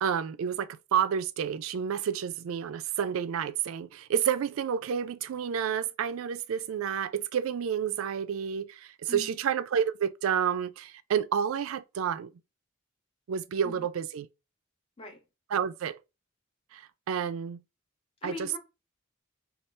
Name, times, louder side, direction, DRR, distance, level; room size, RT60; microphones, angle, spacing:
voice 1, 0.0-12.3 13.3-14.3 15.5-16.0 16.7-17.6 18.2-18.5, right 8 dB, 75° right, 0.3 m, -30 dB
voice 2, 18.2-18.6, left 3 dB, 25° left, 0.6 m, -41 dB
4.3 x 2.3 x 3.2 m
head